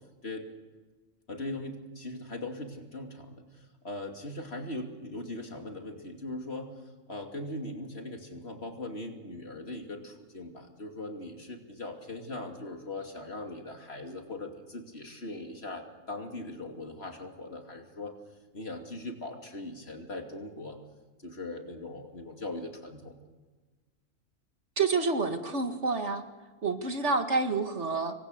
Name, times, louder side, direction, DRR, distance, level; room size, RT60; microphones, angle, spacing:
voice 1, 1.3-6.8 7.1-18.2 18.5-20.8 21.2-23.2, left 2 dB, 50° left, 3 dB, 3.0 m, -40 dB
voice 2, 24.8-26.2 26.6-28.1, right 4 dB, 60° right, 6 dB, 2.1 m, -28 dB
27.0 x 23.0 x 6.7 m, 1.3 s
omnidirectional pair, 1.4 m